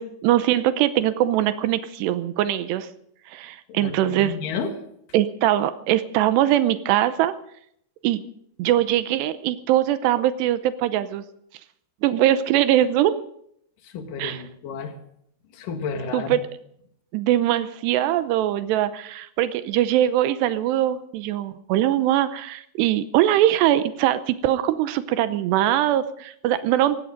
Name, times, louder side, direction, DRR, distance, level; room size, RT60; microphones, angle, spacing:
voice 1, 0.0-2.9 3.3-4.4 5.1-7.4 8.0-8.2 8.6-11.2 12.0-13.2 14.2-14.4 16.1-16.4 17.1-27.0, right 12 dB, 80° right, 12 dB, 2.9 m, -22 dB
voice 2, 3.7-4.7 13.8-15.0 15.5-16.4, left 5 dB, 55° left, 5 dB, 3.2 m, -31 dB
17.5 x 16.0 x 5.1 m, 0.70 s
omnidirectional pair, 4.9 m